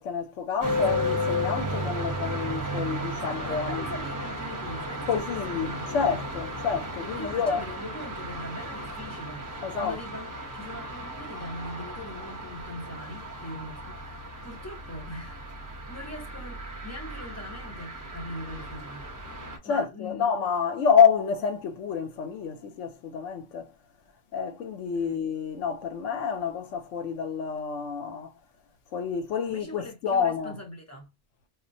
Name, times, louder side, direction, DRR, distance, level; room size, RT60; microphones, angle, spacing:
voice 1, 0.0-3.9 5.1-7.6 9.6-10.0 19.6-23.7 24.3-28.3 28.9-30.5, left 6 dB, 80° left, 1.0 m, -28 dB
sound 1, 0.6-19.6, equal, 20° right, 0.7 m, -34 dB
voice 2, 0.7-1.0 3.2-6.2 7.0-15.5 15.9-19.1 19.6-20.4 24.9-25.1 29.5-31.1, left 1 dB, 15° left, 0.7 m, -41 dB
4.7 x 2.1 x 2.6 m
omnidirectional pair, 1.3 m